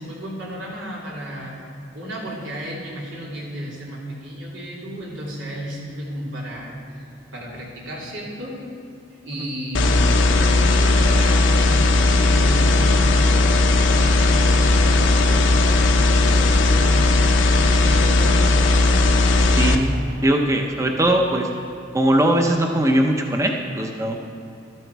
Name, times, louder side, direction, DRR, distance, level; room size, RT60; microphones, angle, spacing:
voice 1, 0.0-1.7 1.9-7.0 7.3-8.6 9.2-15.6 15.9-18.8, equal, 85° right, -4 dB, 3.2 m, -33 dB
sound 1, 9.7-19.8, left 2 dB, 75° left, 0.9 m, -17 dB
voice 2, 19.5-21.5 21.9-24.2, right 1 dB, 15° right, 2 dB, 0.8 m, -20 dB
13.0 x 12.0 x 4.7 m, 2.8 s
head